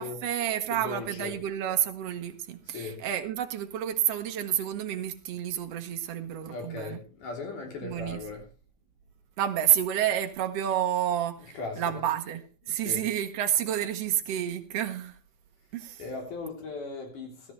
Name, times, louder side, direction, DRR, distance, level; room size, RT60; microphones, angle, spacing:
voice 1, 0.0-7.0 7.8-8.2 9.4-15.2 15.7-16.0, right 10 dB, 65° right, 1.5 m, -29 dB
voice 2, 0.7-1.3 2.7-3.0 6.4-8.4 11.5-12.0 12.8-13.0 16.0-17.5, left 4 dB, 60° left, 4.9 m, -38 dB
17.0 x 13.0 x 3.2 m
omnidirectional pair, 4.2 m